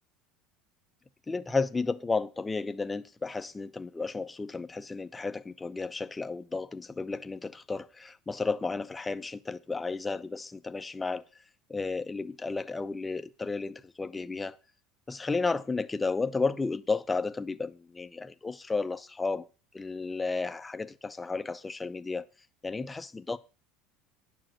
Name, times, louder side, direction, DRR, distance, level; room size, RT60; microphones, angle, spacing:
voice 1, 1.3-11.2 11.7-14.6 15.1-19.5 19.7-22.3 22.6-23.4, left 3 dB, 10° left, 0.5 m, -33 dB
10.0 x 4.8 x 7.7 m
cardioid pair, 170°, 0 cm